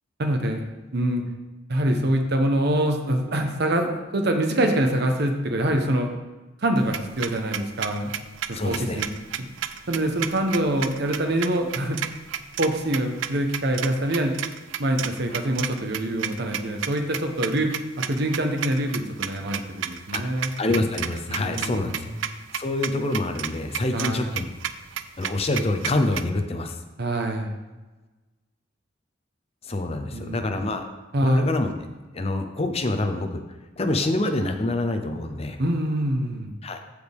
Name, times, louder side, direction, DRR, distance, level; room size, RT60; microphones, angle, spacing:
voice 1, 0.2-0.6 0.9-1.2 1.7-6.1 6.6-8.1 8.5-9.1 9.4-9.5 9.9-12.0 12.6-14.4 14.8-17.7 18.0-20.5 21.3-22.0 23.9-24.3 27.0-27.5 30.1-30.5 31.1-31.5 35.6-36.5, right 1 dB, 60° right, 4 dB, 1.1 m, -25 dB
sound 1, 6.8-26.2, right 10 dB, 80° right, 0.4 m, -32 dB
voice 2, 8.5-9.0 20.1-20.2 20.6-22.1 22.5-24.5 25.2-26.7 29.6-30.9 31.2-31.7 32.1-33.4 33.8-35.6 36.6-36.8, left 2 dB, 30° left, 6 dB, 0.7 m, -26 dB
14.5 x 5.0 x 3.5 m, 1.2 s
head